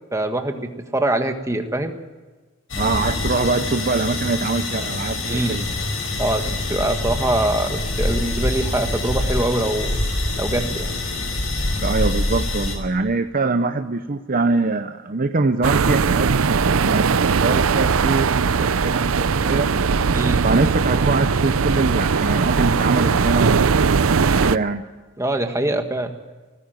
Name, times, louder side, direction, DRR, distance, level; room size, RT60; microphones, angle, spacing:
voice 1, 0.1-2.0 5.2-5.6 6.2-10.0 10.4-10.9 20.1-20.4 25.2-26.1, right 1 dB, 15° right, 6 dB, 1.6 m, -23 dB
sound 1, 2.7-12.7, left 2 dB, 80° left, 5.5 m, -25 dB
voice 2, 2.8-5.6 11.8-19.7 20.4-23.7 24.4-24.9, right 3 dB, 45° right, 7 dB, 0.8 m, -23 dB
sound 2, 15.6-24.6, right 5 dB, 75° right, 0.6 m, -19 dB
18.5 x 15.5 x 9.2 m, 1.3 s
head